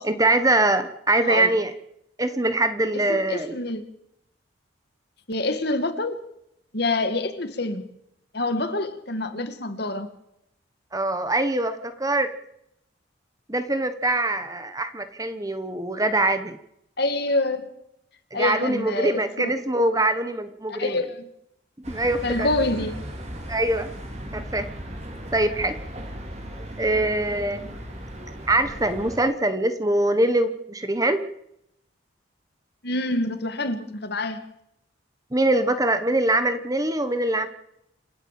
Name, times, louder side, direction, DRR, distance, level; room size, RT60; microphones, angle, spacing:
voice 1, 0.0-1.7 2.2-3.6 10.9-12.3 13.5-16.6 18.3-21.0 21.8-22.5 23.5-23.9 24.3-24.7 25.3-25.8 26.8-27.8 28.5-31.2 35.3-37.5, right 2 dB, 15° right, 10 dB, 1.3 m, -23 dB
voice 2, 2.9-3.8 5.3-6.2 6.7-7.8 8.3-10.1 17.0-17.7 18.3-19.5 20.7-21.3 22.2-23.0 32.8-34.4, left 2 dB, 55° left, 8 dB, 2.2 m, -26 dB
sound 1, 21.8-29.2, equal, 35° right, 3.6 m, -37 dB
28.0 x 13.0 x 7.7 m, 0.78 s
head